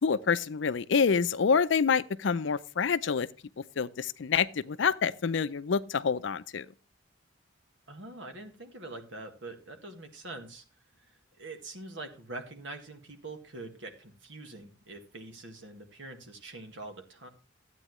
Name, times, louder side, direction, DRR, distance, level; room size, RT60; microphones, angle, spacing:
voice 1, 0.0-3.3 3.6-6.7, left 6 dB, 65° left, 0.5 m, -27 dB
voice 2, 7.9-10.6 11.0-17.3, right 2 dB, 70° right, 1.8 m, -44 dB
13.0 x 8.9 x 3.1 m
head